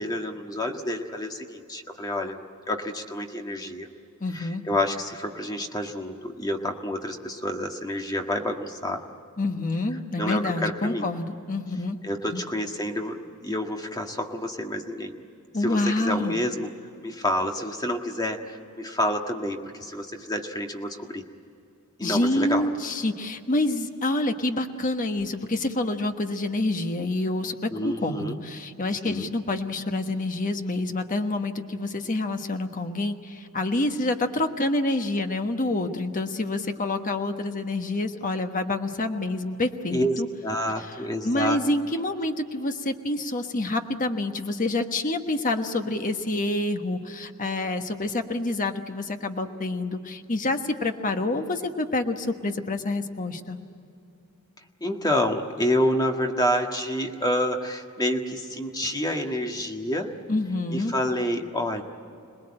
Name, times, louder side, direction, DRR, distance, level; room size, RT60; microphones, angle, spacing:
voice 1, 0.0-2.3 2.7-3.9 4.3-9.0 10.2-11.1 12.0-15.2 15.6-16.7 17.0-21.2 22.0-22.6 27.7-28.4 29.0-29.3 39.9-41.6 54.8-60.1 60.7-61.8, left 1 dB, 15° left, 3 dB, 1.7 m, -28 dB
voice 2, 4.2-4.6 9.4-12.0 12.3-12.4 15.5-16.4 22.0-40.3 40.8-41.0 41.2-53.6 60.3-60.9, left 2 dB, 35° left, 6 dB, 1.3 m, -27 dB
27.0 x 20.0 x 8.8 m, 2.6 s
head